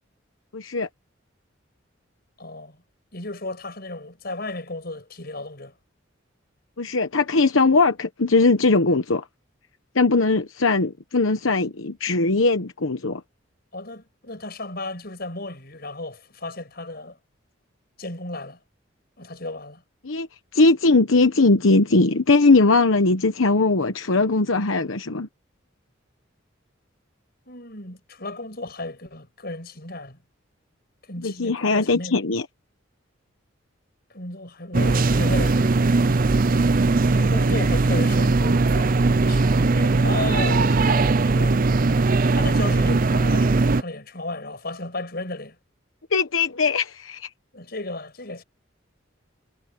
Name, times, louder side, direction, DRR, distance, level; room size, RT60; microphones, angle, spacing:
voice 1, 0.5-0.9 6.8-9.2 9.9-13.2 20.0-20.3 20.5-25.3 31.2-32.4 46.1-47.3, left 3 dB, 85° left, 1.1 m, -20 dB
voice 2, 2.4-2.8 3.1-5.7 13.7-17.2 18.0-18.6 19.2-19.8 27.5-30.2 31.0-32.2 34.1-35.8 37.0-41.7 42.0-45.6 47.5-48.4, left 2 dB, 50° left, 6.5 m, -34 dB
sound 1, 34.7-43.8, right 3 dB, 45° right, 0.6 m, -19 dB
head